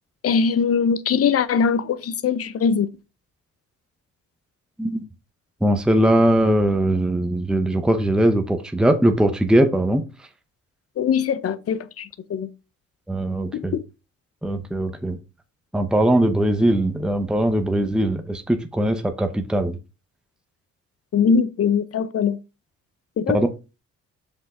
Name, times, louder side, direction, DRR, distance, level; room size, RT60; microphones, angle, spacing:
voice 1, 0.2-2.9 11.0-12.5 13.5-13.8 21.1-22.4 23.2-23.4, left 6 dB, 50° left, 0.8 m, -21 dB
voice 2, 5.6-10.0 13.1-13.8 14.4-15.2 15.7-19.8 23.3-23.5, right 1 dB, 5° right, 0.8 m, -20 dB
6.1 x 5.2 x 3.6 m
cardioid pair, 90°, 30 cm